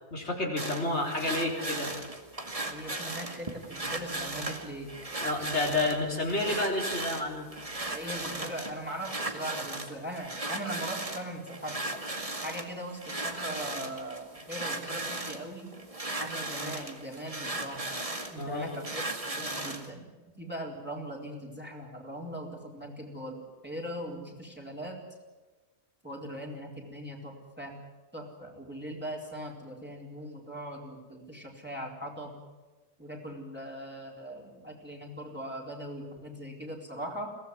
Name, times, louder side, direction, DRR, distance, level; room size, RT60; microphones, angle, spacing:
voice 1, 0.1-2.0 5.2-7.5 18.4-18.7, left 2 dB, 85° left, -1 dB, 4.3 m, -30 dB
sound 1, 0.6-19.9, right 2 dB, 30° right, 2.2 m, -37 dB
voice 2, 2.7-4.9 5.9-6.0 7.9-11.8 12.4-15.8 16.2-18.0 18.3-25.0 26.0-27.8 28.1-32.4 33.0-37.3, right 1 dB, 10° right, -1 dB, 4.1 m, -40 dB
23.0 x 17.5 x 9.5 m, 1.2 s
omnidirectional pair, 1.1 m